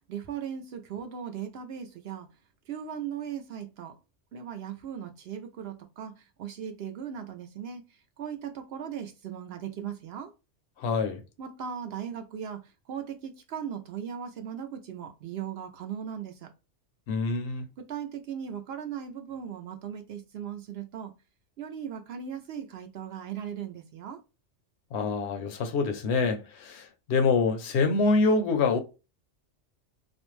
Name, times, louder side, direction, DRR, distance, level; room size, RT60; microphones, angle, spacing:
voice 1, 0.0-2.3 2.7-4.0 4.3-10.3 11.4-16.5 17.8-21.1 21.6-24.2, right 8 dB, 65° right, 0.7 m, -38 dB
voice 2, 10.8-11.2 17.1-17.7 24.9-28.8, left 4 dB, 65° left, 0.8 m, -26 dB
2.4 x 2.1 x 3.0 m
omnidirectional pair, 1.3 m